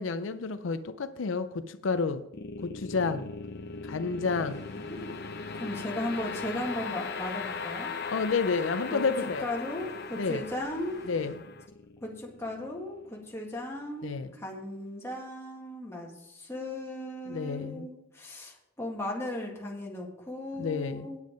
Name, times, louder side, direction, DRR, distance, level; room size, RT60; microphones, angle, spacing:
voice 1, 0.0-2.2 2.6-3.3 3.8-4.6 8.1-9.4 10.2-10.4 11.1-11.4 14.0-14.3 17.3-17.9 20.6-21.1, left 4 dB, 85° left, 11 dB, 0.5 m, -30 dB
sound 1, 2.3-13.5, left 4 dB, 55° left, 0.8 m, -39 dB
sound 2, 4.4-11.4, equal, 15° right, 1.9 m, -57 dB
voice 2, 5.5-7.9 8.9-9.1 9.4-11.1 12.0-21.2, left 1 dB, 15° left, -2 dB, 1.8 m, -36 dB
9.5 x 7.4 x 5.1 m, 0.85 s
head